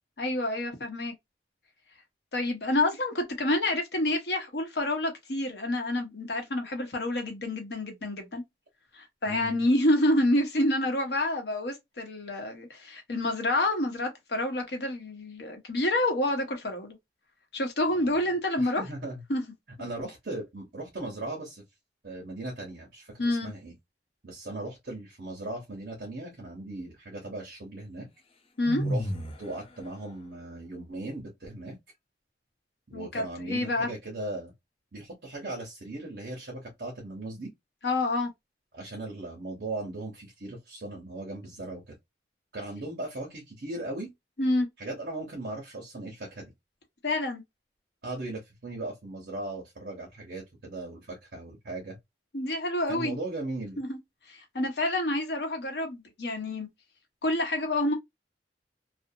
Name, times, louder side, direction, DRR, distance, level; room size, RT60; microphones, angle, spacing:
voice 1, 0.2-1.1 2.3-8.4 8.9-17.0 17.5-18.8 19.3-19.4 23.2-23.5 28.6-28.8 32.9-33.9 37.8-38.3 44.4-44.7 47.0-47.4 52.3-53.2 53.8-54.0 54.3-56.7 57.2-57.9, left 1 dB, 65° left, 0.9 m, -28 dB
voice 2, 9.3-9.6 17.9-18.3 18.6-19.2 19.8-21.6 22.0-23.7 24.2-28.1 28.8-29.1 29.4-31.8 32.9-34.5 34.9-37.5 38.7-41.9 42.5-44.1 44.8-46.5 48.0-52.0 52.9-53.8, right 2 dB, 60° right, 0.8 m, -38 dB
sound 1, 28.7-29.5, equal, 30° left, 0.5 m, -30 dB
2.5 x 2.1 x 2.6 m
head